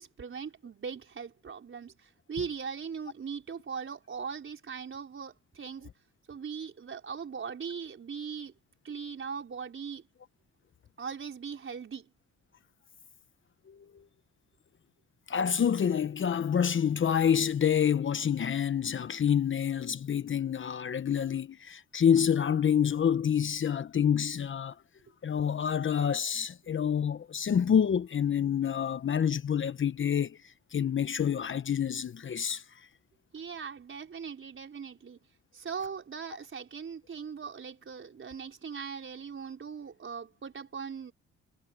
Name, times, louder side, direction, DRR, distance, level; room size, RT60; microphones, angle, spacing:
voice 1, 0.0-5.9 6.3-8.5 8.8-10.0 11.0-12.0 33.3-35.2 35.5-41.1, right 6 dB, 40° right, 5.0 m, -40 dB
voice 2, 15.3-24.7 25.2-30.4 30.7-32.6, left 8 dB, 40° left, 0.9 m, -27 dB
cardioid pair, 90°, 30 cm